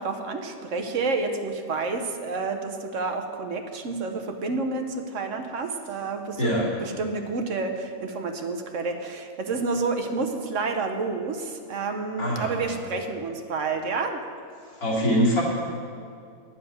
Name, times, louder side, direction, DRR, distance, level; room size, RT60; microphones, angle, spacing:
voice 1, 0.0-14.2, right 4 dB, 60° right, 5 dB, 1.2 m, -29 dB
voice 2, 6.4-6.7 12.2-12.5 14.8-15.4, equal, 80° left, -6 dB, 3.5 m, -23 dB
10.0 x 7.1 x 9.3 m, 2.4 s
omnidirectional pair, 1.5 m